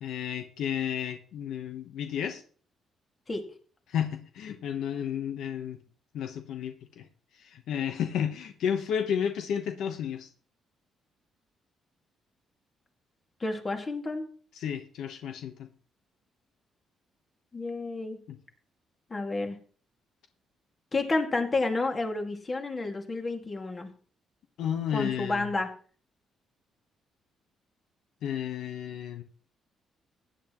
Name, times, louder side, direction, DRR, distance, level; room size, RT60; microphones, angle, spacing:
voice 1, 0.0-2.4 3.9-5.8 6.1-7.1 7.3-10.3 14.5-15.7 18.3-18.4 24.6-25.5 28.2-29.2, left 8 dB, 80° left, 7 dB, 1.1 m, -32 dB
voice 2, 13.4-14.3 17.5-18.2 19.1-19.6 20.9-23.9 24.9-25.7, left 3 dB, 30° left, 4 dB, 2.2 m, -30 dB
16.0 x 10.0 x 3.0 m, 0.43 s
cardioid pair, 90°, 0 cm